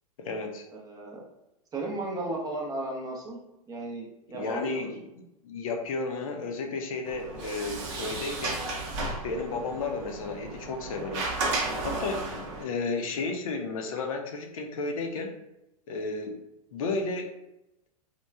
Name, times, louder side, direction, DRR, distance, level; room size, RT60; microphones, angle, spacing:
voice 1, 0.2-0.6 4.3-8.6 9.2-15.3 15.9-16.4 16.7-17.3, left 3 dB, 65° left, 3 dB, 0.5 m, -33 dB
voice 2, 0.7-1.2 1.7-3.4 3.7-4.8 12.6-12.7, right 2 dB, 20° right, -1 dB, 0.6 m, -35 dB
Sliding door, 7.0-12.6, right 2 dB, 55° right, 0.7 m, -33 dB
3.0 x 2.1 x 2.3 m, 0.91 s
hypercardioid pair, 105°, 19 cm